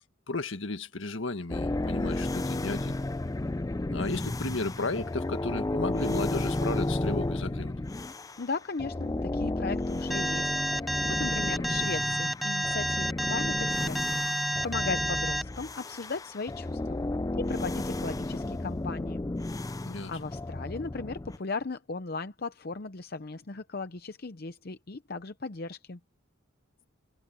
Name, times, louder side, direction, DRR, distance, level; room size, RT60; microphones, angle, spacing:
voice 1, 0.3-3.0 3.9-7.7 19.8-20.1, left 2 dB, 70° left, 1.7 m, -34 dB
sound 1, 1.5-8.5 8.8-21.4, left 2 dB, 15° left, 0.4 m, -33 dB
voice 2, 8.4-10.6 11.1-17.1 17.4-19.2 20.1-26.0, left 4 dB, 50° left, 0.7 m, -37 dB
Alarm, 10.1-15.4, equal, ahead, 0.8 m, -29 dB
head